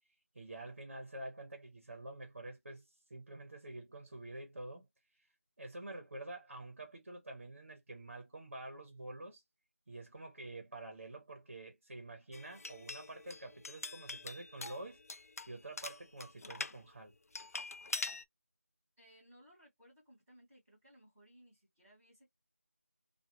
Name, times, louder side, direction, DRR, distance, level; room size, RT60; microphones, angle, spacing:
voice 1, 0.3-4.9 5.1-5.3 5.6-9.4 9.9-15.0 15.5-17.1, right 2 dB, 55° right, 1.0 m, -48 dB
sound 1, 12.3-16.8 17.3-18.2, left 3 dB, 90° left, 0.4 m, -44 dB
voice 2, 19.0-22.3, equal, 10° right, 1.0 m, -62 dB
2.4 x 2.3 x 2.8 m
figure-of-eight pair, 175°, 8 cm